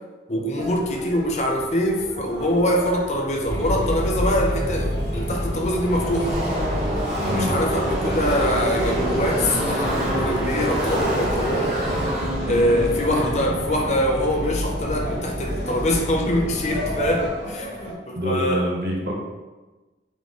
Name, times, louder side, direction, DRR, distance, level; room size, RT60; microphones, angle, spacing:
voice 1, 0.3-6.4 7.3-11.7 12.5-18.6, left 1 dB, 40° left, 1 dB, 0.5 m, -24 dB
sound 1, 0.6-17.9, equal, 85° right, 1.2 m, -38 dB
sound 2, 3.5-17.3, equal, 60° left, 1.2 m, -29 dB
Car passing by / Race car auto racing, 5.0-15.1, equal, 20° right, 1.3 m, -28 dB
voice 2, 7.2-7.6 12.5-12.6 13.1-13.3 18.2-19.2, equal, 65° right, -1 dB, 0.8 m, -26 dB
3.6 x 3.1 x 3.7 m, 1.2 s
head